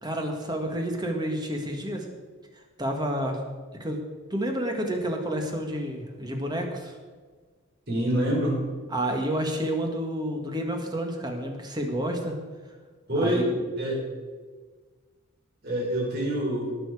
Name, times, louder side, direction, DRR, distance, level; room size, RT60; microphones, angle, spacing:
voice 1, 0.0-2.0 2.8-3.4 3.8-4.0 4.3-7.0 8.9-12.3 13.1-13.6, right 1 dB, 20° right, 3 dB, 1.7 m, -29 dB
voice 2, 7.9-8.7 13.1-13.5 13.8-14.0 15.6-16.7, right 1 dB, 50° right, -3 dB, 4.5 m, -26 dB
18.5 x 7.0 x 4.9 m, 1.5 s
head